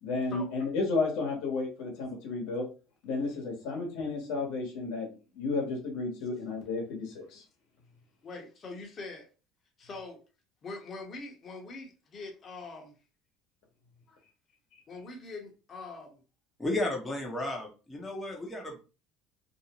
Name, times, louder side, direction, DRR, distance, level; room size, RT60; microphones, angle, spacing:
voice 1, 0.0-2.7 3.0-5.1 5.3-7.4, left 3 dB, 80° left, 0 dB, 1.0 m, -32 dB
voice 2, 8.2-9.3 9.8-10.2 10.6-12.9 14.1-14.2 14.9-16.2, left 3 dB, 40° left, 1 dB, 0.9 m, -43 dB
voice 3, 16.6-18.8, left 1 dB, 15° left, 0 dB, 0.7 m, -33 dB
2.6 x 2.0 x 2.9 m, 0.33 s
supercardioid pair, 95°, 0 cm